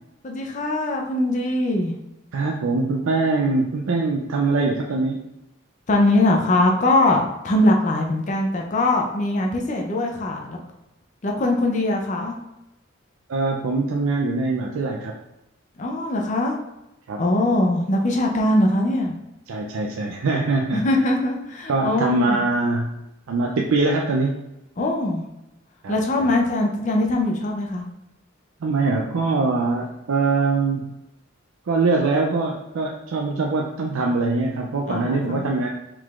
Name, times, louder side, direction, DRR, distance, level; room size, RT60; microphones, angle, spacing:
voice 1, 0.2-1.9 5.9-10.6 11.2-12.4 15.8-16.6 17.2-19.2 20.7-22.4 24.8-25.2 25.9-27.8 34.9-35.5, left 1 dB, 35° left, 1 dB, 0.5 m, -21 dB
voice 2, 2.3-5.2 13.3-15.1 17.1-17.2 19.5-20.8 21.7-23.0 23.3-24.3 25.8-25.9 26.2-26.3 28.6-30.9 31.7-35.7, right 3 dB, 85° right, 0 dB, 0.4 m, -23 dB
4.6 x 3.8 x 2.4 m, 0.90 s
head